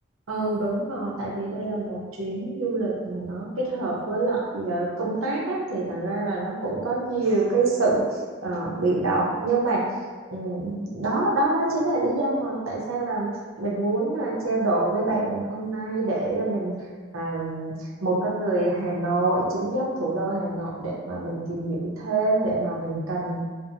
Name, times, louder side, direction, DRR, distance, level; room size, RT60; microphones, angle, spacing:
voice 1, 0.3-8.0 8.4-9.8 10.3-13.3 13.6-16.7 17.1-17.7 18.0-23.4, right 2 dB, 85° right, -4 dB, 0.7 m, -26 dB
2.5 x 2.5 x 2.7 m, 1.5 s
head